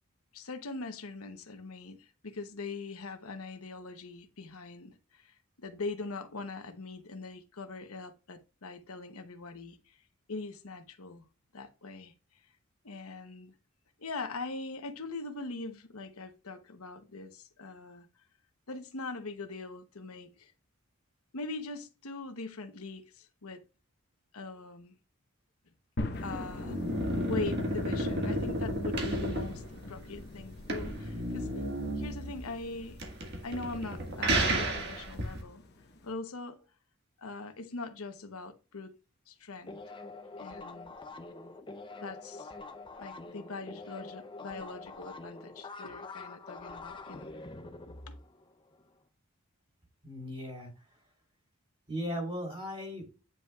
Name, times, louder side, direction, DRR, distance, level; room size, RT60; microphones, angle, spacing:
voice 1, 0.3-10.0 10.3-11.2 11.5-12.1 12.8-13.5 14.0-18.1 18.7-20.5 21.3-23.6 24.3-25.0 26.2-26.8 27.2-31.5 32.0-33.0 33.4-35.6 36.0-36.6 37.2-38.9 39.3-39.8 40.4-40.9 42.0-42.5 43.0-47.3 47.8-48.0, left 3 dB, 90° left, 1.0 m, -42 dB
sound 1, 26.0-36.1, left 1 dB, 50° left, 0.9 m, -45 dB
sound 2, 26.1-35.4, right 1 dB, 50° right, 1.7 m, -32 dB
sound 3, 39.6-48.8, left 3 dB, 20° left, 0.6 m, -45 dB
voice 2, 50.0-51.0 51.9-53.0, equal, 25° right, 3.6 m, -37 dB
9.4 x 5.5 x 2.4 m
head